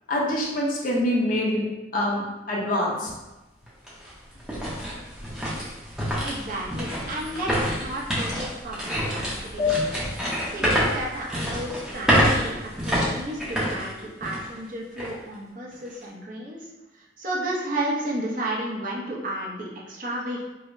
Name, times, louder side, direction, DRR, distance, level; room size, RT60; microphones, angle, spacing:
voice 1, 0.1-1.6 1.9-3.1, left 1 dB, 45° left, -3 dB, 0.7 m, -25 dB
sound 1, 3.1-3.2 3.7-14.6 15.0-15.1 15.7-16.0, equal, 5° right, 0.6 m, -27 dB
voice 2, 6.2-9.9 10.5-20.5, right 1 dB, 45° right, -4 dB, 0.7 m, -33 dB
sound 2, 9.6-12.5, left 6 dB, 80° left, 0.8 m, -32 dB
4.7 x 2.1 x 2.5 m, 1.0 s
head